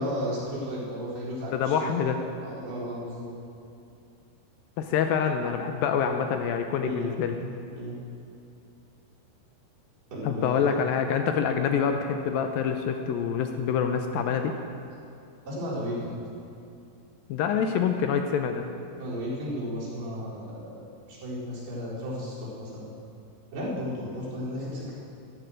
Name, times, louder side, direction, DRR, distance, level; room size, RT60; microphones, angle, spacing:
voice 1, 0.0-3.3 6.8-6.9 7.4-7.5 7.8-8.0 10.1-10.7 15.4-16.2 19.0-20.8 21.1-22.9 23.5-25.0, equal, 75° right, -8 dB, 6.7 m, -34 dB
voice 2, 1.5-2.2 4.8-7.3 10.2-14.5 17.3-18.6, left 7 dB, 80° left, 5 dB, 2.2 m, -26 dB
14.5 x 12.5 x 6.5 m, 2.6 s
omnidirectional pair, 4.6 m